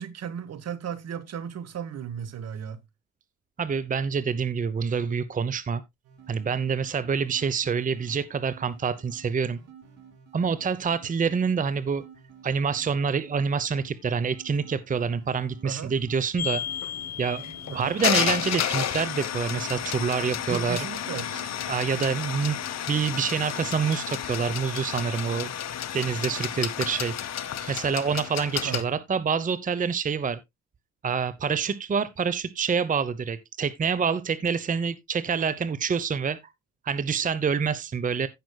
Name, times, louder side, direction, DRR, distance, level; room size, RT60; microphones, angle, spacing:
voice 1, 0.0-2.8 15.6-15.9 17.7-18.0 20.5-21.3 28.6-28.9, right 8 dB, 55° right, 1.2 m, -35 dB
voice 2, 3.6-5.8 6.3-9.6 10.3-12.0 12.4-16.6 17.2-20.8 21.3-21.4 21.7-22.6 22.9-25.5 25.9-30.4 31.0-36.4 36.8-38.3, right 6 dB, 25° right, 0.7 m, -27 dB
sound 1, 6.0-23.7, right 6 dB, 90° right, 2.8 m, -52 dB
sound 2, 16.4-28.8, left 10 dB, 60° left, 1.1 m, -31 dB
16.0 x 6.0 x 2.2 m
cardioid pair, 90°, 30 cm